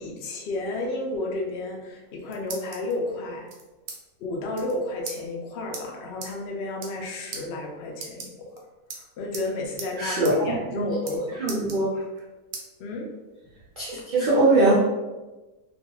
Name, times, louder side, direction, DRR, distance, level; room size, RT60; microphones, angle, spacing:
voice 1, 0.0-3.5 4.2-8.5 8.9-11.4 12.8-13.1, left 2 dB, 90° left, 0 dB, 0.5 m, -32 dB
sound 1, 1.9-2.9 3.5-4.0 4.3-4.4 4.5-4.7 5.1-5.2 5.7-5.8 6.2-6.3 6.7-7.0 7.3-7.4 7.9-8.6 8.9-9.5 9.8-9.9 10.2-10.4 10.6-11.2 11.5-12.2 12.5-12.7 13.2-14.0, right 4 dB, 90° right, 1.1 m, -38 dB
voice 2, 10.0-10.9 11.4-12.0 13.8-14.8, right 2 dB, 70° right, -8 dB, 0.4 m, -22 dB
2.5 x 2.3 x 2.9 m, 1.1 s
omnidirectional pair, 1.6 m